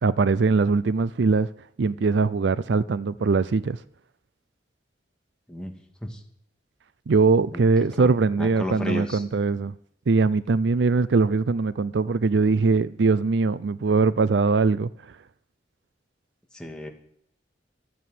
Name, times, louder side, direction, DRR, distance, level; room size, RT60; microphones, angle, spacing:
voice 1, 0.0-1.5 1.8-3.8 7.1-9.7 10.1-14.9, right 4 dB, 70° right, 0.5 m, -21 dB
voice 2, 7.5-8.1 8.4-9.2 16.5-16.9, equal, 5° left, 2.0 m, -33 dB
12.5 x 8.5 x 9.3 m
head